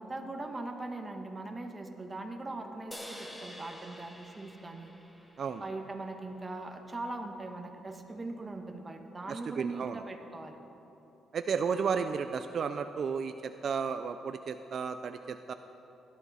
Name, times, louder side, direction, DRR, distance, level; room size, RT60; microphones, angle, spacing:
voice 1, 0.0-4.9 5.6-10.6, right 2 dB, 25° right, 4 dB, 1.4 m, -40 dB
sound 1, 2.9-6.4, equal, 10° left, 1.3 m, -48 dB
voice 2, 9.3-10.0 11.3-15.5, right 6 dB, 55° right, 8 dB, 0.4 m, -33 dB
17.5 x 11.5 x 4.2 m, 2.9 s
cardioid pair, 90°, 0 cm